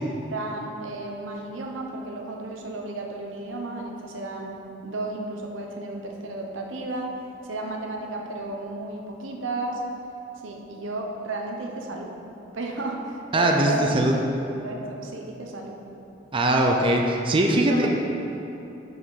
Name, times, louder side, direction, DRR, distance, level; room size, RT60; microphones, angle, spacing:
voice 1, 0.3-7.2 7.4-9.8 10.4-12.1 12.5-14.3 14.6-15.8 17.6-17.9, right 2 dB, 75° right, 1 dB, 1.0 m, -33 dB
voice 2, 13.3-14.1 16.3-17.9, right 1 dB, 25° right, 1 dB, 0.6 m, -21 dB
10.0 x 5.1 x 4.1 m, 3.0 s
head